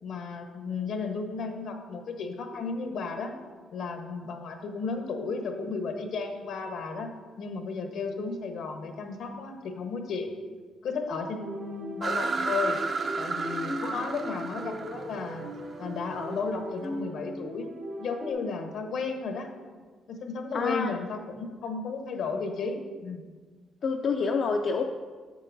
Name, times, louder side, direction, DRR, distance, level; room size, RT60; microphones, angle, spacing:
voice 1, 0.0-3.3 3.7-7.1 7.4-10.3 10.8-12.8 13.2-15.5 15.8-19.5 20.1-23.2, left 4 dB, 75° left, 5 dB, 1.0 m, -34 dB
sound 1, 11.1-18.3, equal, 70° right, 1.8 m, -39 dB
sound 2, 12.0-16.6, right 4 dB, 45° right, 0.6 m, -32 dB
voice 2, 20.5-20.9 23.8-24.8, left 4 dB, 55° left, 3 dB, 0.4 m, -28 dB
8.2 x 7.4 x 2.6 m, 1.5 s
cardioid pair, 90°, 0 cm